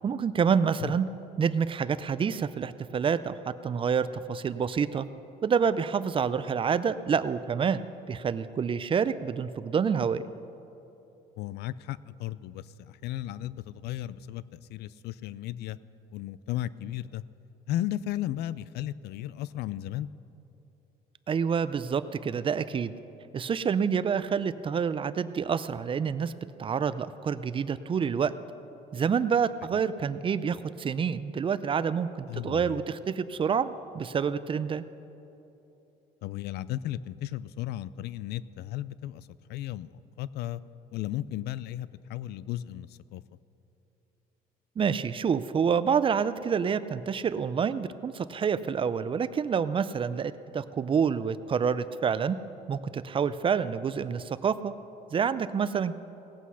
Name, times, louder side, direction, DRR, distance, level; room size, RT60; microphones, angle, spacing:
voice 1, 0.0-1.1 1.4-5.1 5.4-7.8 8.1-10.2 21.3-22.9 23.3-26.3 26.6-28.3 28.9-34.8 44.8-52.4 52.7-54.7 55.1-56.0, right 6 dB, 30° right, 14 dB, 0.4 m, -28 dB
voice 2, 11.4-15.8 16.1-17.2 17.7-20.1 29.7-29.8 32.3-32.8 36.2-40.6 40.9-43.2, left 13 dB, 75° left, 18 dB, 0.4 m, -35 dB
18.0 x 8.3 x 5.6 m, 2.9 s
cardioid pair, 110°, 17 cm